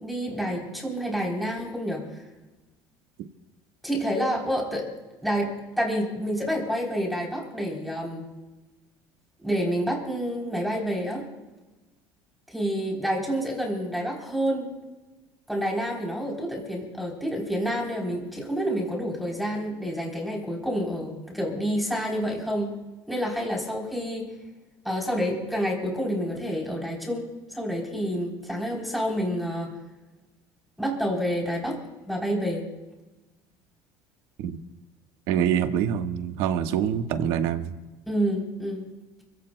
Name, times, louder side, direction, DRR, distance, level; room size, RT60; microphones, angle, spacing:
voice 1, 0.0-2.2 3.8-4.9 5.2-8.3 9.4-11.2 12.5-14.7 15.5-22.7 23.1-24.3 24.8-29.7 30.8-31.8 32.1-32.7 38.1-38.9, equal, ahead, -2 dB, 3.4 m, -28 dB
voice 2, 35.3-37.7, right 9 dB, 70° right, 7 dB, 1.3 m, -25 dB
29.5 x 16.5 x 2.2 m, 1.1 s
cardioid pair, 150°, 10 cm